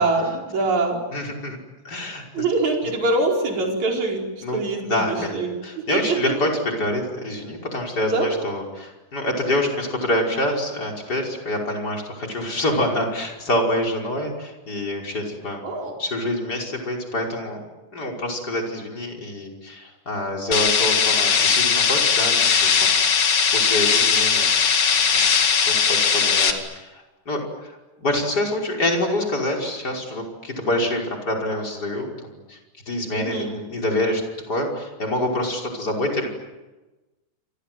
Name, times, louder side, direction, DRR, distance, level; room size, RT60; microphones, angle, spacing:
voice 1, 0.0-1.0 2.3-6.5 8.1-8.3 15.6-15.9 33.1-33.5, right 3 dB, 60° right, 0 dB, 6.2 m, -24 dB
voice 2, 1.1-1.6 1.8-2.4 4.4-15.6 16.0-17.6 17.9-24.5 24.9-25.3 25.6-32.6 32.9-34.2 34.5-36.3, left 1 dB, 30° left, 0 dB, 5.9 m, -26 dB
sound 1, 20.5-26.5, left 6 dB, 65° left, 3.7 m, -19 dB
28.5 x 27.0 x 7.8 m, 1.1 s
omnidirectional pair, 3.6 m